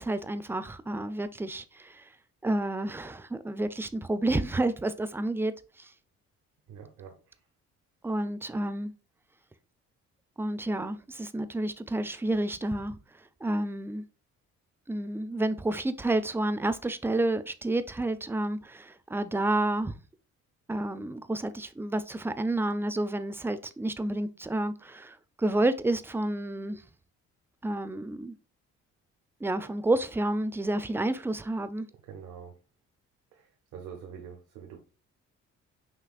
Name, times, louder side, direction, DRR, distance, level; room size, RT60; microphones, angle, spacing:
voice 1, 0.0-2.1 2.4-5.9 8.0-8.9 10.4-13.0 13.4-14.0 14.9-19.9 20.7-26.8 27.6-28.3 29.4-31.9, right 1 dB, 10° right, 0.3 m, -30 dB
voice 2, 6.7-7.4 32.0-32.6 33.3-34.8, right 7 dB, 90° right, 0.8 m, -45 dB
5.8 x 2.9 x 2.4 m
cardioid pair, 90°, 30 cm